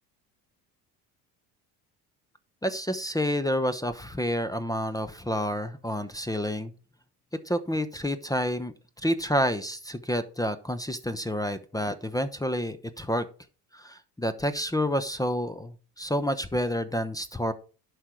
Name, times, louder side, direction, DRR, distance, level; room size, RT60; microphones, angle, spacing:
voice 1, 2.6-6.7 7.5-8.7 9.0-13.3 13.7-17.5, equal, 5° left, 12 dB, 0.9 m, -29 dB
11.0 x 5.0 x 4.6 m, 0.37 s
hypercardioid pair, 60°, 49 cm